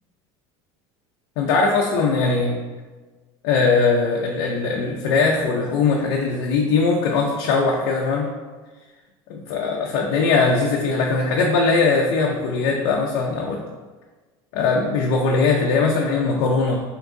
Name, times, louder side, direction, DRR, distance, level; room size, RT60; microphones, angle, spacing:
voice 1, 1.4-2.6 3.4-8.3 9.3-13.6 14.5-16.8, left 4 dB, 65° left, -1 dB, 0.5 m, -20 dB
3.5 x 2.9 x 3.6 m, 1.3 s
cardioid pair, 170°, 12 cm